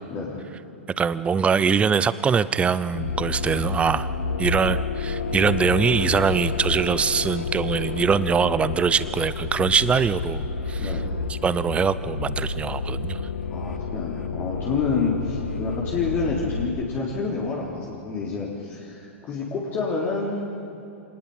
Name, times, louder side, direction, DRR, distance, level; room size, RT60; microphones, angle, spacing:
voice 1, 0.1-0.4 5.2-5.9 10.8-11.1 13.5-20.5, left 4 dB, 30° left, -4 dB, 3.7 m, -28 dB
voice 2, 1.0-4.1 4.4-10.9 11.3-13.2, right 6 dB, 15° right, 16 dB, 0.7 m, -23 dB
sound 1, 2.9-16.7, left 4 dB, 85° left, 1.6 m, -30 dB
26.0 x 19.0 x 5.7 m, 2.8 s
figure-of-eight pair, 105°, 7 cm